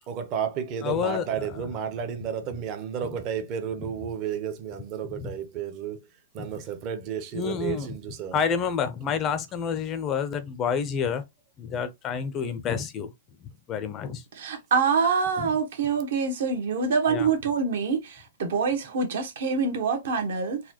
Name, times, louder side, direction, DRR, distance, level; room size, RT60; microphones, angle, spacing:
voice 1, 0.1-6.0 6.3-8.4, right 8 dB, 30° right, 0.7 m, -32 dB
voice 2, 0.8-1.8 2.2-2.6 3.0-3.2 3.7-4.0 5.1-5.3 6.4-6.6 7.3-8.0 8.3-11.2 11.6-13.1 13.4-14.2 15.4-15.5 17.1-17.3, left 7 dB, 25° left, 0.5 m, -30 dB
voice 3, 14.4-20.6, right 5 dB, 65° right, 1.1 m, -25 dB
4.0 x 2.3 x 2.8 m
hypercardioid pair, 150°, 0 cm